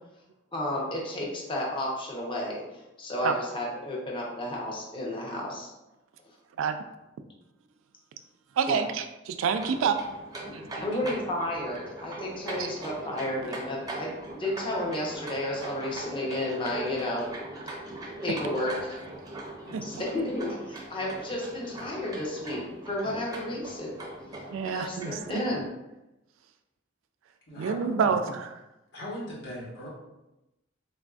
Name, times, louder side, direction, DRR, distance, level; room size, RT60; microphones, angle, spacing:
voice 1, 0.5-5.7 8.7-8.9 10.8-14.1 14.4-17.2 18.2-19.0 19.8-23.9 24.6-25.7, left 1 dB, 25° left, -3 dB, 0.6 m, -32 dB
voice 2, 8.6-10.0 10.5-10.8 12.6-12.7 19.7-19.8 24.5-25.4 27.6-28.5, right 6 dB, 75° right, 9 dB, 0.3 m, -28 dB
sound 1, 9.5-25.7, right 1 dB, 20° right, 0.5 m, -40 dB
voice 3, 27.5-28.1 28.9-29.9, equal, 65° left, -6 dB, 1.2 m, -39 dB
3.9 x 2.5 x 2.3 m, 0.95 s
head